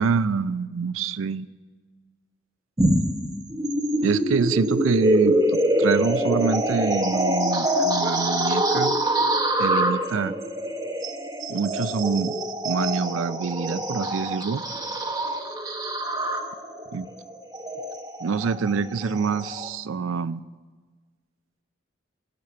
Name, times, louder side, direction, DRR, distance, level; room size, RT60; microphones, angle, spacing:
voice 1, 0.0-1.5 4.0-8.9 9.6-10.4 11.5-12.3 12.6-14.6 16.9-17.1 18.2-20.4, right 5 dB, 80° right, 14 dB, 0.4 m, -26 dB
sound 1, 2.8-19.7, right 1 dB, 20° right, 0.9 m, -25 dB
15.5 x 5.8 x 9.7 m, 1.4 s
head